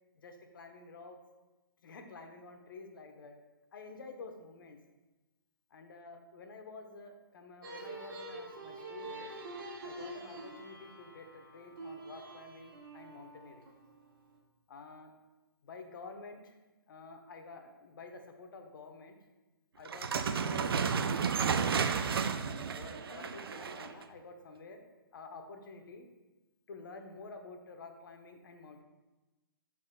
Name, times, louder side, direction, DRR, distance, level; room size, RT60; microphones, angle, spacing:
voice 1, 0.2-1.2 1.8-3.4 3.7-4.8 5.7-9.3 9.8-13.6 14.7-15.1 15.6-16.6 16.9-19.2 19.7-22.0 22.6-24.9 25.1-26.1 26.7-28.8, left 3 dB, 65° left, 5 dB, 1.0 m, -50 dB
sound 1, 7.6-14.4, right 2 dB, 65° right, 1.5 m, -46 dB
sound 2, 19.9-24.0, right 6 dB, 85° right, 0.5 m, -32 dB
12.5 x 4.2 x 2.3 m, 1.1 s
hypercardioid pair, 150°, 12 cm